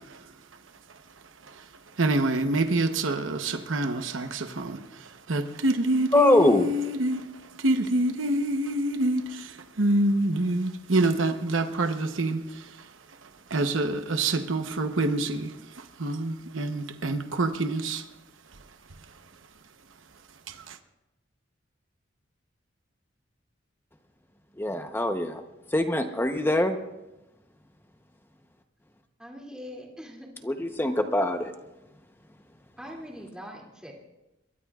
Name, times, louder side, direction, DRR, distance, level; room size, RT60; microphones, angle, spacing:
voice 1, 2.0-4.8 5.3-7.2 7.6-9.5 9.8-12.4 13.5-15.5 16.0-18.0 20.7-20.8, right 2 dB, 90° right, 7 dB, 1.0 m, -26 dB
voice 2, 6.1-6.7 24.6-25.4 25.7-26.8 30.4-31.5, left 1 dB, 10° left, 6 dB, 0.8 m, -23 dB
voice 3, 29.2-30.3 32.8-33.9, equal, 5° right, -2 dB, 2.5 m, -42 dB
23.0 x 22.0 x 2.4 m, 0.97 s
head